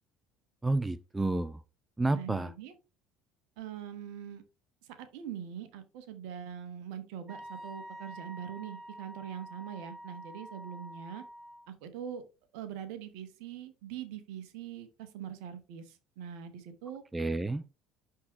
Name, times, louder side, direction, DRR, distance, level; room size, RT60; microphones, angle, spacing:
voice 1, 0.6-1.6 2.0-2.5 17.1-17.6, right 2 dB, 10° right, 0.4 m, -30 dB
voice 2, 2.1-2.7 3.6-4.4 4.8-11.2 11.7-12.2 12.5-17.0, right 9 dB, 60° right, 1.1 m, -43 dB
Wind instrument woodwind instrument, 7.3-11.7, equal, 35° right, 1.1 m, -47 dB
11.5 x 3.8 x 3.0 m
figure-of-eight pair, 60°, 0 cm